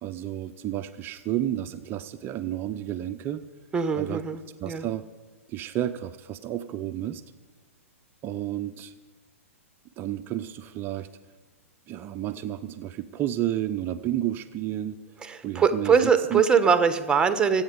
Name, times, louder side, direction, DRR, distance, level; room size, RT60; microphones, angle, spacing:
voice 1, 0.0-3.4 3.9-4.2 4.6-5.0 5.5-7.2 8.2-8.9 10.0-11.1 11.9-15.0 15.4-16.4, right 12 dB, 30° right, 9 dB, 0.6 m, -31 dB
voice 2, 3.7-4.9 15.2-17.6, right 6 dB, 10° right, 10 dB, 1.2 m, -22 dB
25.0 x 8.8 x 5.3 m, 1.3 s
hypercardioid pair, 115°, 8 cm